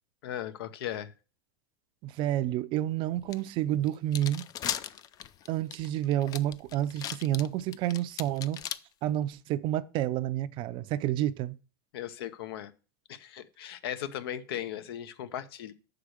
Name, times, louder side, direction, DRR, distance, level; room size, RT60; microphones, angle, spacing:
voice 1, 0.2-1.1 11.9-12.7 13.1-15.7, left 11 dB, 75° left, 0.9 m, -37 dB
voice 2, 2.0-4.4 5.5-8.6 9.0-11.5, right 13 dB, 40° right, 0.5 m, -29 dB
sound 1, 3.3-3.4 3.9-8.8, left 10 dB, 30° left, 0.4 m, -37 dB
6.4 x 4.9 x 6.4 m
supercardioid pair, 135°, 13 cm